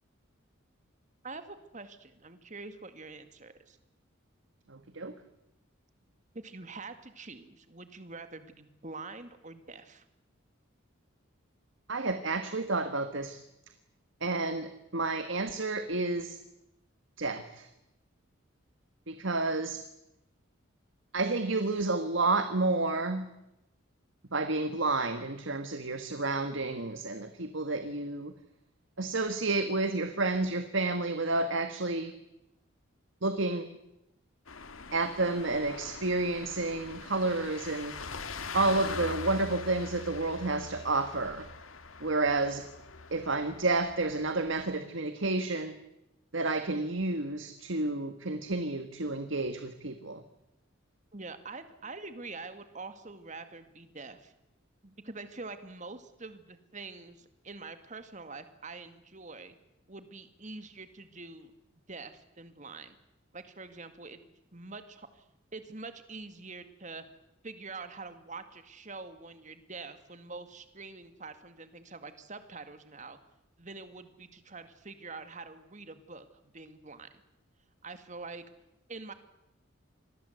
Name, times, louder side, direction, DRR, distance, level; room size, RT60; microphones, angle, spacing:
voice 1, 1.2-3.8 6.3-10.0 51.1-54.3 54.8-59.5 59.9-61.5 61.9-63.0 63.3-64.2 64.5-65.2 65.5-67.0 67.4-73.2 73.6-76.3 76.5-77.1 77.8-78.4 78.9-79.1, right 3 dB, 35° right, 10 dB, 2.1 m, -45 dB
voice 2, 4.7-5.1 11.9-13.4 14.2-16.4 17.2-17.7 19.1-19.8 21.1-23.2 24.3-28.3 29.0-32.1 33.2-33.7 34.9-38.1 38.5-41.5 42.0-42.7 43.1-45.7 46.3-50.2, right 3 dB, 65° right, 8 dB, 1.6 m, -30 dB
sound 1, 34.5-44.8, left 4 dB, 80° left, 1.9 m, -43 dB
27.0 x 21.0 x 8.2 m, 0.89 s
head